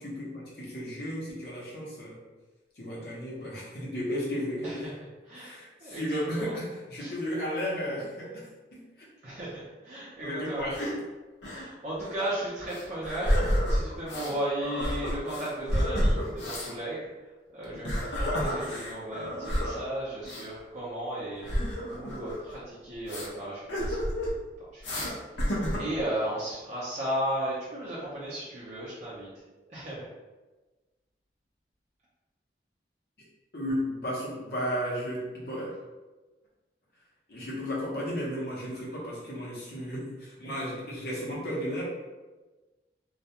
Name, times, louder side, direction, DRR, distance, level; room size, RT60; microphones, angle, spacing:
voice 1, 0.0-2.2 2.8-4.8 5.4-8.4 8.7-8.8 10.2-10.9 33.5-35.7 37.3-41.8, equal, 60° left, -5 dB, 0.8 m, -34 dB
voice 2, 5.2-6.6 7.0-7.1 9.2-10.7 11.4-17.1 17.5-21.5 21.9-24.1 24.6-25.2 25.7-29.3 29.7-30.1, right 1 dB, 40° right, -9 dB, 0.5 m, -35 dB
sound 1, 10.6-11.0 11.4-11.7 12.0-12.1 12.7-14.3 14.6-16.7 17.6-19.8 20.2-20.4 21.4-22.6 23.1-23.3 23.7-24.4 24.8-25.1 25.4-26.0, equal, 85° left, 0.7 m, -29 dB
2.3 x 2.2 x 2.8 m, 1.2 s
head